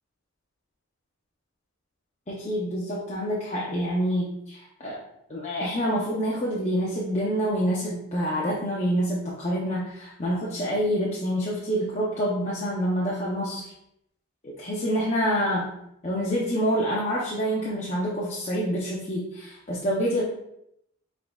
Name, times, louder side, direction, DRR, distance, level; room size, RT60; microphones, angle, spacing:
voice 1, 2.3-5.0 5.3-13.7 14.4-15.7 16.0-20.2, equal, 30° left, -6 dB, 0.7 m, -27 dB
5.6 x 3.7 x 2.3 m, 0.77 s
head